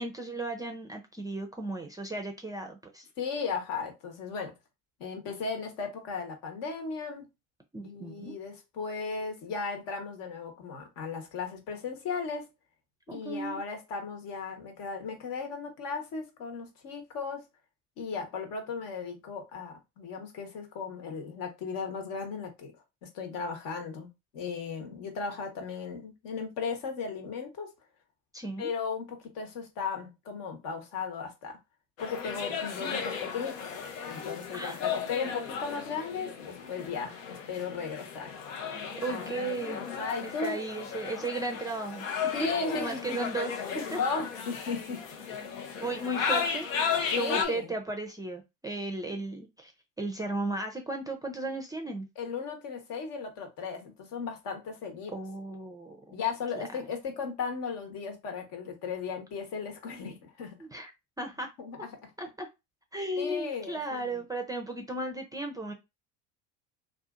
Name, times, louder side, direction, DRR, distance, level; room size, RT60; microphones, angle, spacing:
voice 1, 0.0-3.1 7.7-8.4 13.1-13.6 28.3-28.7 34.5-34.8 39.0-39.8 40.2-44.0 45.5-46.7 47.2-49.7 50.0-52.1 55.1-56.0 56.5-56.7 60.6-60.9 61.2-61.5 62.2-62.5 62.9-65.7, right 2 dB, 10° right, 0.4 m, -35 dB
voice 2, 3.2-4.5 5.0-7.3 7.8-12.5 13.1-17.4 18.0-22.7 23.0-27.7 28.6-31.6 32.0-33.7 34.1-38.3 39.1-39.3 39.8-40.6 42.3-43.3 44.0-45.6 47.1-47.7 52.2-55.1 56.1-60.5 61.6-61.9 63.2-64.2, left 5 dB, 60° left, 1.1 m, -36 dB
sound 1, 32.0-47.4, left 6 dB, 90° left, 0.7 m, -35 dB
2.6 x 2.5 x 2.4 m
hypercardioid pair, 75°, 38 cm